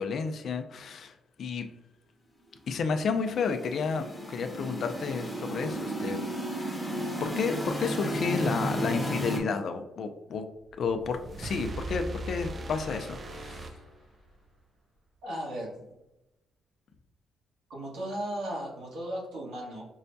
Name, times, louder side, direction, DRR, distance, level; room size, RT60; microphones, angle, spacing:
voice 1, 0.0-1.7 2.7-6.2 7.2-10.5 10.8-13.8, left 5 dB, 60° left, 7 dB, 0.4 m, -31 dB
sound 1, 3.0-9.4, equal, 5° left, 0.9 m, -34 dB
sound 2, 10.7-14.5, right 2 dB, 40° right, 0.3 m, -39 dB
voice 2, 15.2-15.7 17.7-19.9, right 1 dB, 85° right, -4 dB, 1.4 m, -36 dB
5.4 x 2.2 x 2.6 m, 0.94 s
cardioid pair, 90°, 0 cm